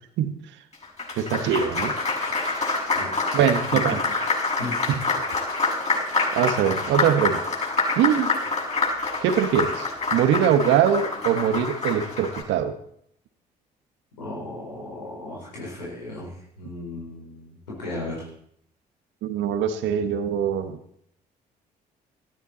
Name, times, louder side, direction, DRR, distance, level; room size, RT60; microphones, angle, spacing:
Applause, 0.7-12.4, left 3 dB, 35° left, 7.0 m, -26 dB
voice 1, 1.2-1.9 3.3-4.0 4.9-5.0 6.3-7.4 7.9-8.3 9.2-12.8 19.2-20.8, right 9 dB, 65° right, 8 dB, 1.6 m, -22 dB
voice 2, 14.2-18.3, left 2 dB, 85° left, -4 dB, 4.5 m, -35 dB
18.5 x 13.5 x 4.2 m, 0.69 s
figure-of-eight pair, 50°, 21 cm